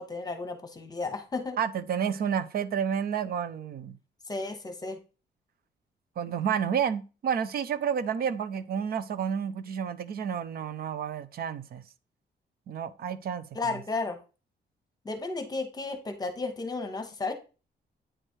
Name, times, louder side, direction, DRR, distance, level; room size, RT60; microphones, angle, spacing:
voice 1, 0.0-1.6 4.3-5.0 13.5-14.2 15.0-17.3, left 3 dB, 20° left, 0.9 m, -33 dB
voice 2, 1.6-4.0 6.2-11.8 12.7-13.5, right 7 dB, 55° right, 0.5 m, -30 dB
8.8 x 3.3 x 4.4 m
wide cardioid pair, 160°, 18 cm